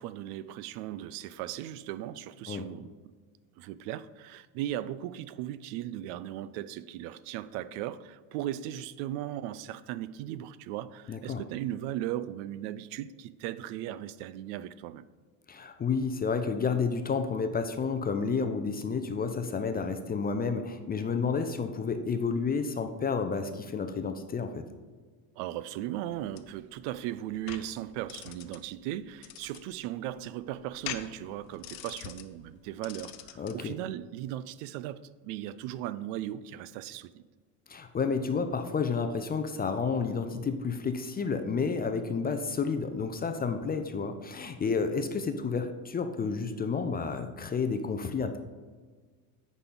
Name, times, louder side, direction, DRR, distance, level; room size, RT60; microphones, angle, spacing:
voice 1, 0.0-2.9 3.6-15.0 25.4-37.2, right 13 dB, 70° right, 0.5 m, -37 dB
voice 2, 11.1-11.4 15.5-24.6 33.4-33.7 37.7-48.4, left 5 dB, 20° left, 0.4 m, -30 dB
sound 1, 26.1-33.6, left 12 dB, 85° left, 0.7 m, -45 dB
9.8 x 4.1 x 3.8 m
supercardioid pair, 95°, 48 cm